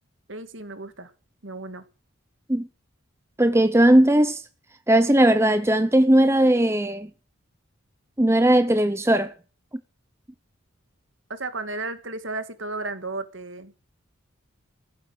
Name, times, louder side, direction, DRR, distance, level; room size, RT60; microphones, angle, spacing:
voice 1, 0.3-1.1 1.4-1.8 11.3-13.7, right 3 dB, 55° right, 2.1 m, -34 dB
voice 2, 3.4-4.4 4.9-7.1 8.2-9.3, right 1 dB, 10° right, 0.7 m, -18 dB
15.5 x 11.0 x 7.8 m
head